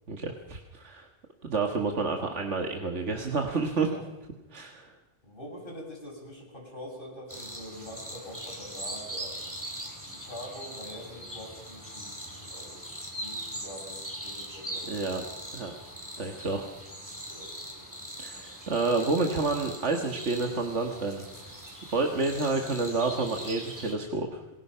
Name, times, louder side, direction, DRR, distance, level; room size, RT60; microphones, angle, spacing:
voice 1, 0.1-1.1 1.4-3.9 4.5-4.9 14.8-15.2 15.5-15.7 16.2-16.7 18.2-21.3 21.9-24.4, right 3 dB, 75° right, 3 dB, 2.1 m, -29 dB
voice 2, 3.7-4.0 5.2-9.4 10.1-12.8 13.2-15.5 17.3-17.9, equal, 45° left, 0 dB, 7.4 m, -45 dB
sound 1, 7.3-23.9, right 1 dB, 15° right, 5.1 m, -41 dB
27.5 x 20.5 x 5.8 m, 1.1 s
omnidirectional pair, 1.2 m